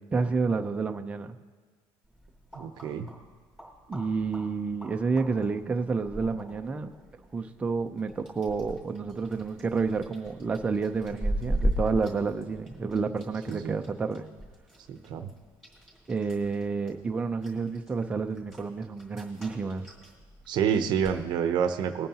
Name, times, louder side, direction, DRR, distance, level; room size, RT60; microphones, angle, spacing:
voice 1, 0.1-1.4 3.9-6.9 7.3-14.3 16.1-19.9, right 4 dB, 10° right, 5 dB, 0.5 m, -30 dB
sound 1, 2.0-21.2, equal, 5° left, 3.1 m, -39 dB
voice 2, 2.5-3.1 13.5-13.8 14.9-15.3 20.5-22.1, right 8 dB, 45° right, 8 dB, 0.7 m, -28 dB
21.0 x 9.3 x 2.9 m, 1.5 s
cardioid pair, 175°, 10 cm